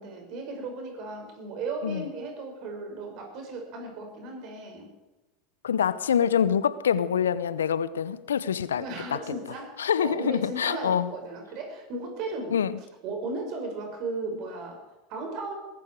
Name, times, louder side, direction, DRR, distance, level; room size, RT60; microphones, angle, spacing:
voice 1, 0.0-4.9 8.8-12.6 13.0-15.5, right 3 dB, 50° right, 5.8 m, -36 dB
voice 2, 5.6-8.8 9.8-11.1 12.5-12.8, left 8 dB, 80° left, 0.7 m, -25 dB
21.0 x 13.0 x 4.8 m
hypercardioid pair, 80°, 0 cm